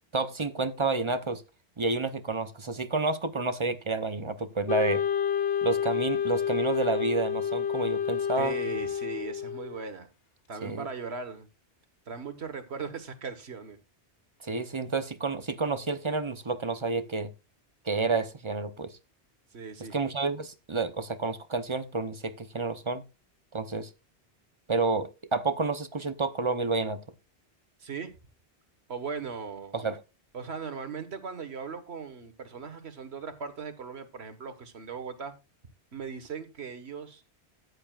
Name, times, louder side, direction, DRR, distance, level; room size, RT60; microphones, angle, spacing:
voice 1, 0.1-1.4 1.8-5.0 5.6-8.5 10.6-10.9 14.4-17.3 17.8-18.9 19.9-23.0 23.5-23.9 24.7-27.0 29.7-30.0, right 3 dB, 30° right, 0.7 m, -30 dB
Wind instrument woodwind instrument, 4.7-9.8, left 8 dB, 65° left, 0.9 m, -29 dB
voice 2, 8.4-10.1 10.5-11.5 12.1-13.8 19.5-19.9 27.8-28.1 28.9-29.7 30.3-35.3 35.9-37.2, right 5 dB, 70° right, 1.6 m, -38 dB
13.5 x 9.8 x 2.4 m
omnidirectional pair, 1.2 m